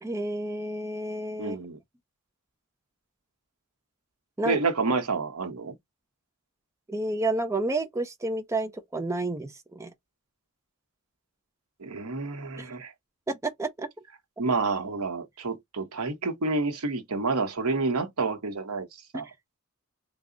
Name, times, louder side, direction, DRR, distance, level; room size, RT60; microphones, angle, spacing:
voice 1, 0.0-1.6 4.4-4.6 6.9-9.9 12.6-12.7 13.3-13.9, right 2 dB, 15° right, 0.4 m, -30 dB
voice 2, 1.4-1.8 4.4-5.8 11.8-12.9 14.4-18.9 19.1-19.3, right 3 dB, 85° right, 0.9 m, -29 dB
3.5 x 2.0 x 3.7 m
head